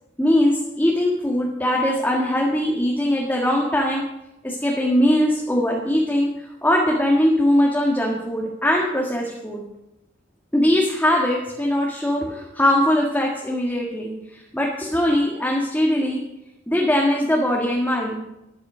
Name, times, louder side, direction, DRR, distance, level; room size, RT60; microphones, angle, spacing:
voice 1, 0.2-4.0 4.4-6.3 6.6-9.6 10.5-16.2 16.7-18.2, left 1 dB, 10° left, -3 dB, 1.8 m, -21 dB
13.0 x 11.5 x 5.1 m, 0.88 s
head